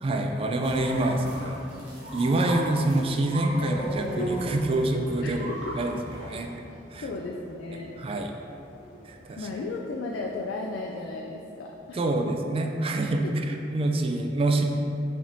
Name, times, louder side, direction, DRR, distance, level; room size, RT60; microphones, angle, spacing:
voice 1, 0.0-1.7 2.1-5.5 5.8-6.5 6.9-7.1 8.0-8.3 9.1-9.5 11.9-13.2 13.7-14.6, right 2 dB, 30° right, 3 dB, 0.3 m, -26 dB
sound 1, 0.6-6.4, equal, 80° right, 0.9 m, -39 dB
sound 2, 3.0-10.6, right 1 dB, 45° left, 0.7 m, -39 dB
voice 2, 5.2-5.8 7.0-8.0 9.4-12.3 13.2-13.3, left 3 dB, 85° left, 0 dB, 0.3 m, -35 dB
5.0 x 3.5 x 2.6 m, 2.7 s
head